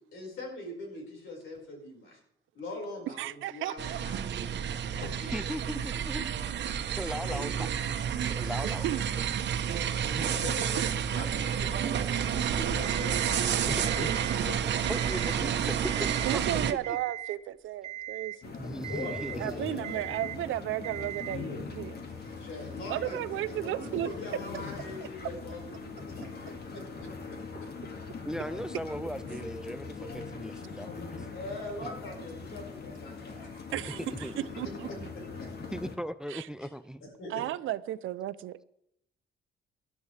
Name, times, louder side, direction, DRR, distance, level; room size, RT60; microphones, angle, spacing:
voice 1, 0.1-2.2 2.5-4.2 5.0-5.5 7.3-7.5 10.3-14.8 16.3-16.4 18.9-20.1 22.4-27.1 31.3-35.0 35.4-35.5 36.6-36.7 37.2-37.4, left 1 dB, 80° left, 5.2 m, -42 dB
voice 2, 3.1-4.0 8.6-9.1 10.3-10.4 10.8-10.9 16.3-18.6 19.4-22.0 22.9-24.1 33.7-35.1 36.3-36.5 37.3-38.6, right 14 dB, 80° right, 0.6 m, -34 dB
sound 1, 3.8-16.7, right 8 dB, 60° right, 1.0 m, -30 dB
voice 3, 5.3-6.3 7.0-8.9 9.2-9.3 10.1-10.3 13.9-14.1 14.9-16.4 18.6-19.8 23.1-23.2 28.3-31.3 31.8-31.9 34.2-34.3 35.7-37.0, equal, 5° right, 0.5 m, -38 dB
Alarm, 12.8-13.4 13.8-14.4 14.8-15.4 15.8-16.4 16.8-17.4 17.8-18.4 18.8-19.4 19.8-20.4 20.8-21.4, right 12 dB, 30° right, 2.2 m, -39 dB
sound 2, 18.4-36.0, left 4 dB, 55° left, 2.1 m, -41 dB
19.0 x 11.5 x 3.4 m
cardioid pair, 90°, 20 cm